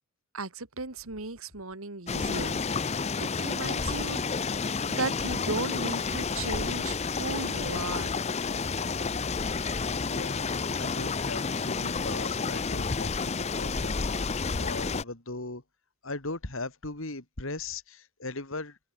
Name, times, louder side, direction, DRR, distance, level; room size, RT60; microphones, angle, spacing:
voice 1, 0.3-4.2 4.9-8.2, right 3 dB, 70° right, 2.2 m, -36 dB
sound 1, 2.1-15.0, left 4 dB, 30° left, 0.6 m, -30 dB
voice 2, 10.1-10.5 10.8-14.0 14.6-15.6 16.0-18.8, left 2 dB, 65° left, 2.6 m, -38 dB
head